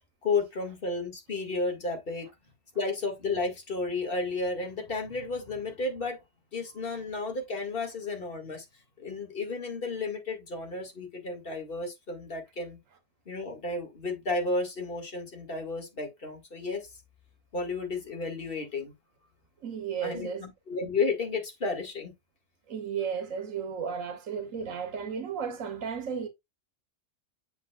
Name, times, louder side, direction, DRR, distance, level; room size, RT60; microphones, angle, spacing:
voice 1, 0.2-2.3 2.8-6.2 6.5-8.7 9.0-12.8 13.3-16.9 17.5-18.9 20.0-22.1, left 3 dB, 45° left, 2.2 m, -32 dB
voice 2, 19.6-20.5 22.7-26.3, right 7 dB, 85° right, 1.4 m, -34 dB
8.0 x 5.9 x 2.3 m
omnidirectional pair, 1.3 m